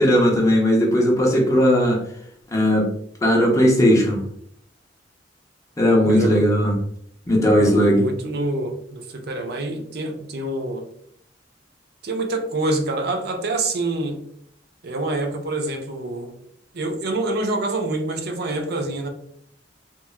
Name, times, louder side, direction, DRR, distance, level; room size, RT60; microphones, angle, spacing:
voice 1, 0.0-2.0 2.5-2.9 3.2-4.2 5.8-6.7 7.3-8.1, equal, 20° left, -1 dB, 0.6 m, -17 dB
voice 2, 6.0-6.4 7.5-10.9 12.0-14.2 14.8-16.3 16.7-19.1, right 2 dB, 60° right, 5 dB, 0.5 m, -26 dB
2.9 x 2.4 x 2.3 m, 0.67 s
head